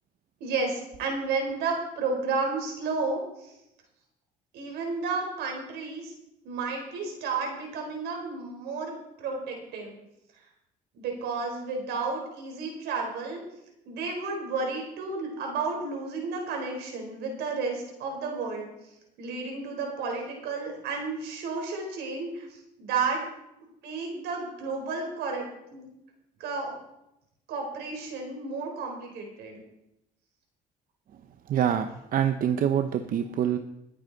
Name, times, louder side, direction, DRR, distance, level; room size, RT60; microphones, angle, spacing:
voice 1, 0.4-3.5 4.5-6.1 6.4-9.9 10.9-13.4 13.9-18.7 19.2-23.2 23.8-25.9 26.4-26.7 27.5-29.6, right 4 dB, 80° right, 2 dB, 4.1 m, -32 dB
voice 2, 31.5-33.6, right 9 dB, 55° right, 8 dB, 0.8 m, -25 dB
20.0 x 8.7 x 4.0 m, 0.86 s
cardioid pair, 110°, 17 cm